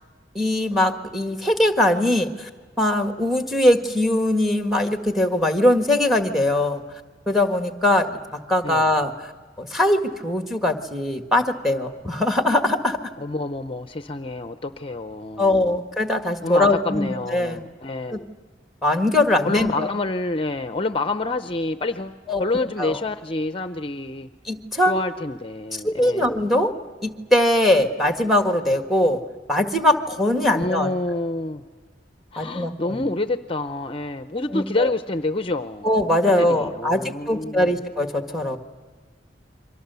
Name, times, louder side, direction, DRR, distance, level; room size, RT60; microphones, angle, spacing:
voice 1, 0.3-2.5 2.8-6.8 7.3-8.1 8.5-9.3 9.6-13.0 15.4-17.6 18.1-18.2 18.8-19.9 22.3-22.4 22.8-23.0 24.5-25.0 25.7-26.7 27.0-29.2 29.5-30.9 32.4-33.0 34.5-34.9 35.8-38.6, left 1 dB, ahead, 6 dB, 1.6 m, -21 dB
voice 2, 13.2-15.7 16.4-18.3 19.4-24.3 24.9-26.4 30.5-31.6 32.3-35.9 36.2-37.8, left 2 dB, 30° left, 9 dB, 0.7 m, -28 dB
29.5 x 24.0 x 6.9 m, 1.5 s
head